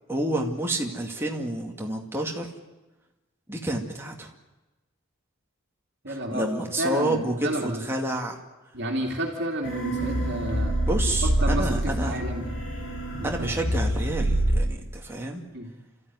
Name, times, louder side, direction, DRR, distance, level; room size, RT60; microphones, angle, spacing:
voice 1, 0.1-2.5 3.5-4.3 6.1-8.4 10.9-12.2 13.2-15.4, right 1 dB, 10° right, 1 dB, 2.3 m, -29 dB
voice 2, 6.0-7.9 8.7-10.8 11.2-12.5 13.1-13.5 15.5-15.7, right 1 dB, 55° right, 1 dB, 2.6 m, -31 dB
sound 1, 9.6-14.6, right 1 dB, 60° left, 5.5 m, -26 dB
30.0 x 14.0 x 9.7 m, 1.1 s
head